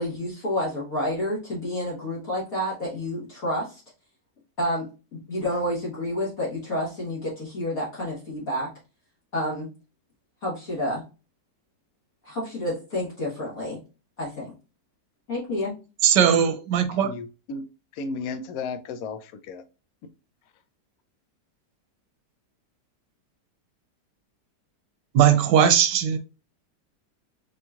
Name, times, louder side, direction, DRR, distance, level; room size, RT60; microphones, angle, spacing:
voice 1, 0.0-3.8 4.6-4.8 5.3-8.7 9.3-9.7 10.4-11.0 12.2-13.8 14.2-14.5 15.3-15.7, left 1 dB, 55° left, 1.8 m, -29 dB
voice 2, 16.0-17.1 25.1-26.2, right 9 dB, 85° right, 1.3 m, -19 dB
voice 3, 17.0-17.6 17.9-19.6, left 4 dB, 70° left, 0.9 m, -34 dB
5.2 x 2.9 x 2.3 m
omnidirectional pair, 1.9 m